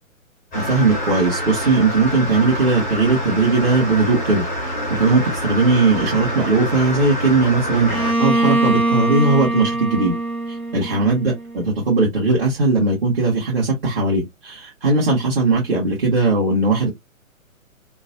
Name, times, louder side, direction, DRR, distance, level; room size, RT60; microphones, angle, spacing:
sound 1, 0.5-8.1, equal, 5° left, 0.5 m, -26 dB
voice 1, 0.5-4.4 5.0-10.2 10.5-16.9, right 3 dB, 45° right, 1.4 m, -18 dB
Bowed string instrument, 7.9-11.6, right 2 dB, 80° right, 1.1 m, -22 dB
3.0 x 2.2 x 2.6 m
figure-of-eight pair, 125°, 42 cm